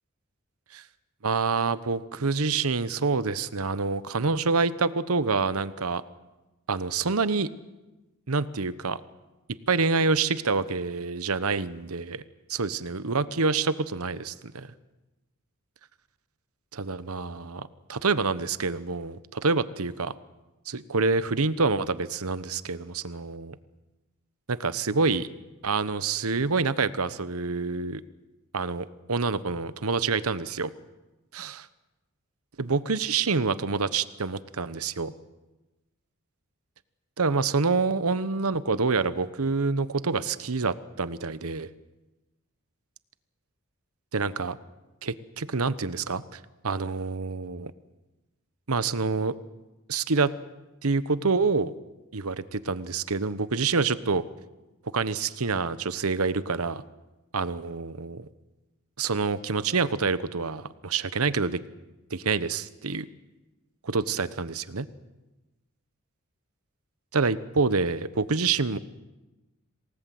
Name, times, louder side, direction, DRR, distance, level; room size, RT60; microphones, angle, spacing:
voice 1, 1.2-6.0 6.7-7.5 8.3-9.0 9.7-12.2 12.5-14.7 16.7-20.1 20.7-23.6 24.5-25.3 25.6-28.0 28.5-30.7 31.3-31.6 32.6-35.1 37.2-41.7 44.1-44.6 45.0-46.4 46.6-47.7 48.7-49.3 49.9-50.3 50.8-51.7 52.1-54.2 54.9-56.8 57.3-58.3 59.0-61.6 62.1-63.1 63.8-64.9 67.1-68.8, right 4 dB, 80° right, 14 dB, 1.0 m, -27 dB
27.5 x 18.5 x 7.8 m, 1.1 s
head